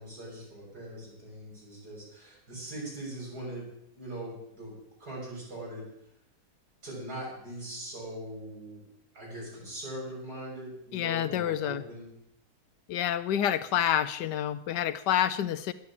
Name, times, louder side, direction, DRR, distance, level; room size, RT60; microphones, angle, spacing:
voice 1, 0.0-3.7 3.9-5.8 6.8-8.9 9.1-12.1, right 1 dB, 60° right, -4 dB, 7.3 m, -41 dB
voice 2, 10.9-11.8 12.9-15.7, left 10 dB, 80° left, 13 dB, 1.3 m, -28 dB
11.5 x 9.6 x 8.6 m, 0.77 s
omnidirectional pair, 1.9 m